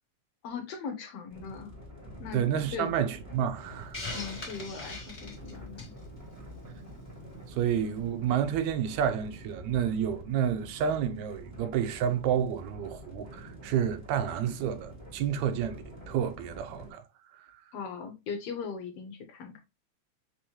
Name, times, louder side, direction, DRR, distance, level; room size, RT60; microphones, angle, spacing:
voice 1, 0.4-1.7 2.2-2.4 2.7-2.9 4.1-5.9 17.7-19.6, left 6 dB, 70° left, 1.8 m, -39 dB
sound 1, 1.3-16.9, equal, 5° right, 1.9 m, -47 dB
voice 2, 2.3-4.0 7.5-17.0 17.4-17.5, right 9 dB, 80° right, 1.9 m, -30 dB
Hiss, 3.9-6.0, left 2 dB, 30° left, 1.0 m, -39 dB
5.5 x 3.1 x 2.9 m
omnidirectional pair, 3.3 m